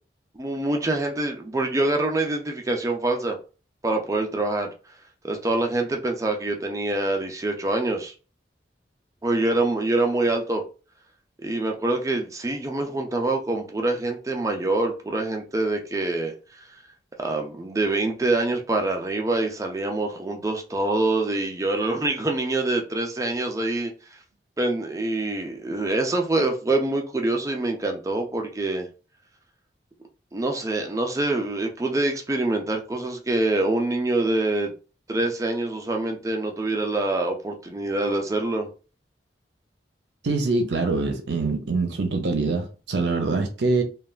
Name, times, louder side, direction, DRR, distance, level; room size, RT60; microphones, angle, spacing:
voice 1, 0.4-3.4 3.8-4.7 5.2-8.1 9.2-10.6 11.4-16.4 17.2-23.9 24.6-28.9 30.3-34.7 35.1-38.7, right 2 dB, 20° right, 0.4 m, -25 dB
voice 2, 40.2-43.8, right 3 dB, 70° right, 0.6 m, -24 dB
3.2 x 2.2 x 2.3 m
head